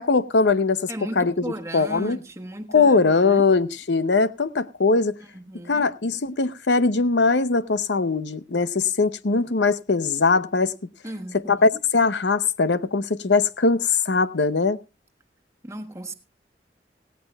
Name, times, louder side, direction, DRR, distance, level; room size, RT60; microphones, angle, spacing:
voice 1, 0.0-0.8 1.2-1.3 1.7-2.2 2.7-5.1 5.7-10.7 11.5-14.8, left 4 dB, 85° left, 0.8 m, -21 dB
voice 2, 0.9-3.5 5.2-5.9 11.0-11.8 15.6-16.1, right 1 dB, 15° right, 1.3 m, -36 dB
18.0 x 16.0 x 2.3 m
head